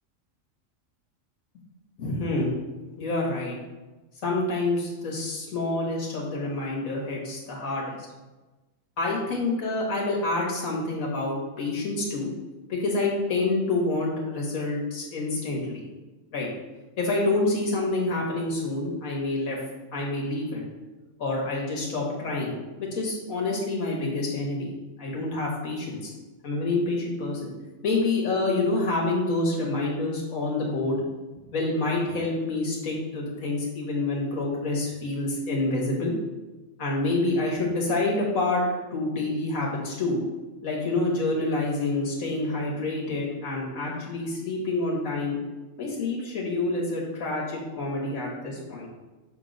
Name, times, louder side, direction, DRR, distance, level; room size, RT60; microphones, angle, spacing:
voice 1, 2.0-2.5 3.0-3.6 4.2-8.0 9.0-12.3 12.7-15.8 16.3-16.5 17.0-19.6 19.9-20.6 21.2-22.5 22.8-26.1 26.4-27.5 27.8-31.0 31.5-36.1 36.8-38.6 38.9-40.2 40.6-45.4 45.8-48.9, left 2 dB, 90° left, -3 dB, 1.6 m, -27 dB
6.8 x 3.0 x 5.1 m, 1.2 s
omnidirectional pair, 1.4 m